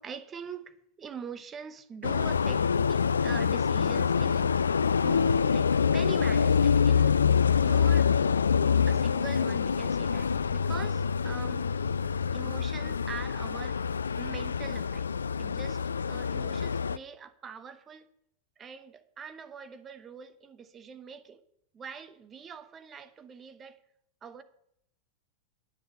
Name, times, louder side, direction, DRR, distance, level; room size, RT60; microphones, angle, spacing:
voice 1, 0.0-4.5 5.0-7.2 7.6-8.1 8.9-11.7 12.3-15.1 15.4-15.8 16.1-18.1 18.6-21.4 21.7-23.8 24.2-24.4, right 6 dB, 25° right, 0.9 m, -43 dB
sound 1, 2.0-17.0, left 6 dB, 70° left, 0.3 m, -26 dB
9.3 x 7.3 x 8.3 m
figure-of-eight pair, 90°, 0 cm